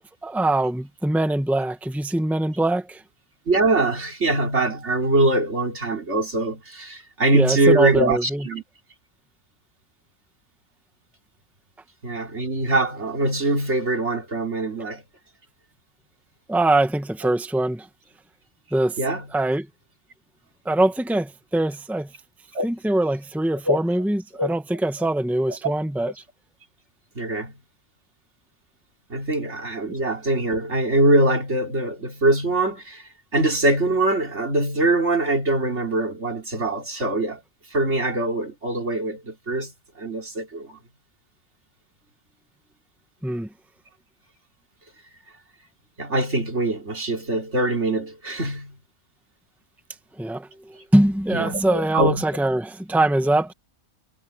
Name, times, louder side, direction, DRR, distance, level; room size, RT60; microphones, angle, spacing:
voice 1, 0.2-3.0 7.3-8.5 16.5-17.9 18.7-19.0 19.3-19.7 20.6-22.1 22.6-26.1 43.2-43.5 50.2-53.5, right 1 dB, ahead, 1.5 m, -23 dB
voice 2, 3.5-8.6 12.0-15.0 19.0-19.3 22.5-22.7 23.7-23.8 24.4-24.5 25.5-25.6 27.2-27.5 29.1-37.4 37.7-39.7 40.0-40.8 46.0-48.8 51.3-52.2, right 2 dB, 65° right, 3.8 m, -23 dB
omnidirectional pair, 1.3 m